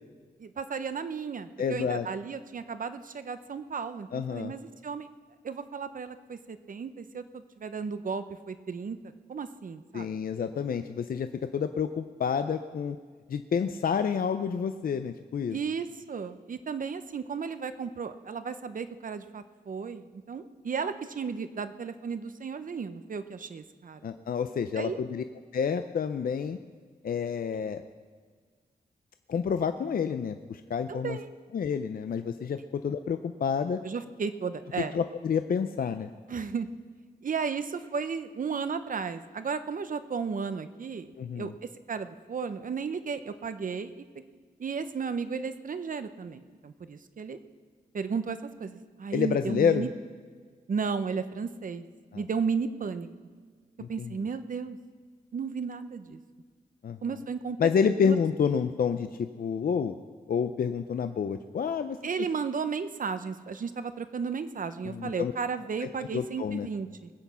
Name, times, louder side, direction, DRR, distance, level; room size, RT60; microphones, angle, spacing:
voice 1, 0.4-5.1 5.4-10.1 15.5-24.0 24.8-25.0 30.9-31.3 33.8-34.9 36.3-36.7 37.2-41.1 41.3-41.5 41.9-44.0 44.6-47.4 47.9-49.9 50.7-51.8 52.1-53.1 53.9-54.8 55.3-56.2 57.0-57.7 58.1-58.2 62.0-67.1, right 5 dB, 55° right, 11 dB, 0.8 m, -34 dB
voice 2, 1.6-2.1 4.1-4.5 9.9-13.0 13.3-15.6 24.0-25.2 25.5-26.6 27.0-27.8 29.3-31.2 31.5-33.8 34.9-36.1 41.2-41.5 49.1-49.9 52.1-52.2 53.8-54.1 56.8-57.0 57.6-60.0 60.3-62.0 64.8-65.3 65.8-66.7, left 6 dB, 60° left, 9 dB, 0.5 m, -29 dB
20.5 x 8.4 x 5.6 m, 1.5 s
wide cardioid pair, 120°, 16 cm